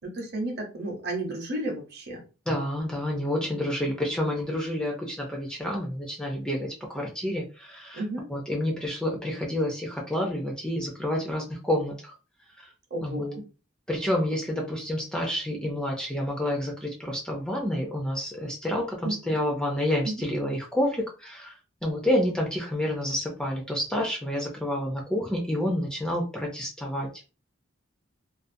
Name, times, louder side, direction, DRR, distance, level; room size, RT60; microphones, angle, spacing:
voice 1, 0.0-2.2 7.9-8.3 12.9-13.4 19.0-19.2 20.0-20.3, right 1 dB, 50° right, 2 dB, 0.8 m, -32 dB
voice 2, 2.5-8.0 8.3-12.1 12.6-12.7 13.0-13.3 13.9-21.6 21.8-27.1, left 1 dB, 5° left, -1 dB, 0.4 m, -29 dB
2.4 x 2.3 x 2.5 m, 0.32 s
head